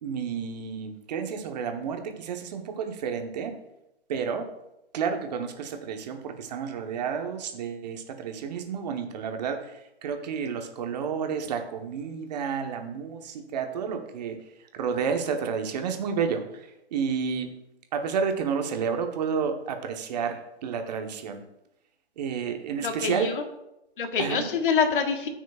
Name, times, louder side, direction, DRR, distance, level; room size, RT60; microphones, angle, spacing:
voice 1, 0.0-3.5 4.1-4.5 4.9-14.4 14.7-17.5 17.9-21.4 22.2-23.3 24.2-24.4, right 6 dB, 40° right, 5 dB, 1.1 m, -30 dB
voice 2, 22.8-23.4 24.0-25.3, left 6 dB, 55° left, 5 dB, 1.4 m, -26 dB
13.5 x 6.2 x 2.4 m, 0.86 s
hypercardioid pair, 150°, 32 cm